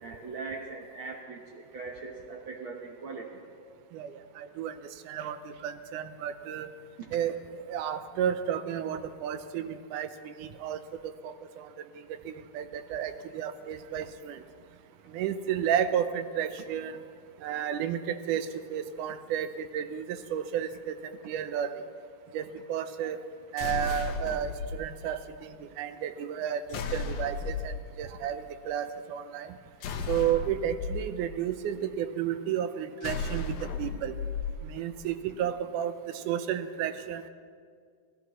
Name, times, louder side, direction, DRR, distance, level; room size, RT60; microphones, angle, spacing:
voice 1, 0.0-3.4 7.0-7.1, right 4 dB, 60° right, 1 dB, 1.4 m, -40 dB
voice 2, 3.9-6.7 7.1-14.4 15.1-17.0 17.4-21.8 22.3-23.2 23.5-29.6 30.1-34.1 34.6-37.3, right 9 dB, 90° right, 10 dB, 2.2 m, -32 dB
sound 1, 23.6-24.7 26.7-27.7 29.8-30.9 33.0-34.5, left 4 dB, 75° left, 2.3 m, -34 dB
25.0 x 17.0 x 3.1 m, 2.1 s
omnidirectional pair, 3.5 m